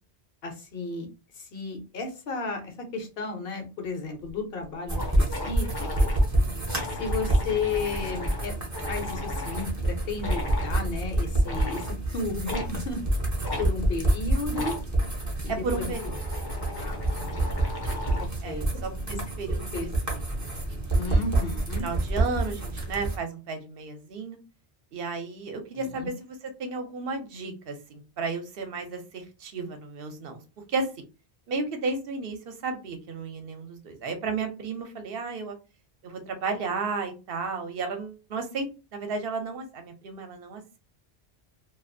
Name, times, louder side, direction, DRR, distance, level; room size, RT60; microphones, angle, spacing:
voice 1, 0.4-1.1 1.3-5.7 6.0-6.1 7.0-8.5 8.9-13.0 13.6-14.8 15.4-15.9 16.8-17.5 18.2-18.6 19.1-19.2 19.5-19.9 20.9-21.8 25.7-26.1, left 3 dB, 60° left, 4 dB, 0.9 m, -33 dB
sound 1, 4.2-4.3 4.6-4.7 4.9-9.7 10.2-10.7 11.4-11.9 12.5-12.7 13.4-13.7 14.5-14.8 15.6-18.4, left 2 dB, 25° left, 0.6 m, -37 dB
sound 2, 4.9-23.2, right 1 dB, 20° right, 0.5 m, -28 dB
voice 2, 15.5-16.2 18.4-19.9 20.4-21.2 21.8-24.4 24.9-30.4 30.7-30.9 31.5-35.6 36.0-38.7 38.9-40.8, right 4 dB, 65° right, 6 dB, 0.8 m, -33 dB
2.5 x 2.3 x 2.5 m, 0.30 s
omnidirectional pair, 1.1 m